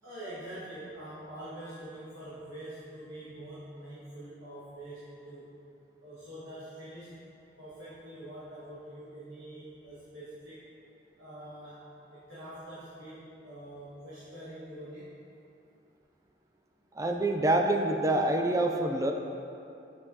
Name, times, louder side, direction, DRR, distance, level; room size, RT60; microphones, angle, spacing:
voice 1, 0.0-5.5 6.0-7.3 7.6-10.6 11.2-15.2, right 1 dB, 80° right, -11 dB, 1.4 m, -45 dB
voice 2, 17.0-19.1, right 1 dB, 20° right, 3 dB, 0.4 m, -26 dB
8.9 x 6.7 x 2.8 m, 2.7 s
head